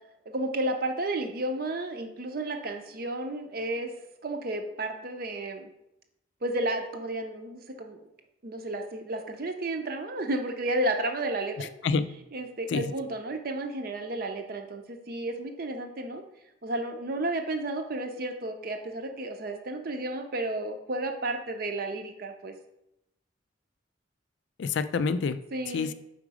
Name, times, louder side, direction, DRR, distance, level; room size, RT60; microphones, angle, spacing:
voice 1, 0.3-3.9 4.2-5.7 6.4-8.0 8.4-11.7 12.3-16.2 16.6-22.5 25.5-25.9, right 2 dB, 50° right, 5 dB, 0.6 m, -32 dB
voice 2, 11.6-12.0 12.7-12.9 24.6-25.4 25.7-25.9, left 5 dB, 65° left, 12 dB, 0.3 m, -27 dB
5.0 x 4.0 x 4.8 m, 0.82 s
head